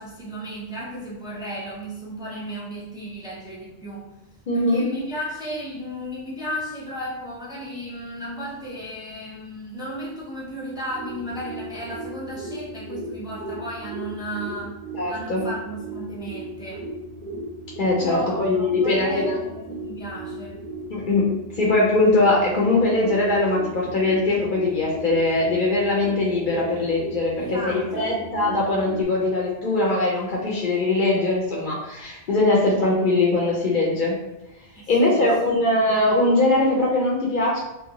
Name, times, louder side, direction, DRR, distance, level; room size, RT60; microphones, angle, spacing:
voice 1, 0.0-4.1 4.5-14.7 15.1-16.9 18.0-20.6 27.4-28.3 34.7-35.5, equal, 5° right, -6 dB, 0.4 m, -34 dB
voice 2, 4.5-4.8 14.9-15.4 17.8-19.4 20.9-34.2 34.9-37.6, left 2 dB, 55° left, -4 dB, 0.6 m, -21 dB
sound 1, 10.7-29.0, right 1 dB, 55° right, 0.6 m, -36 dB
2.6 x 2.2 x 2.8 m, 0.98 s
omnidirectional pair, 1.1 m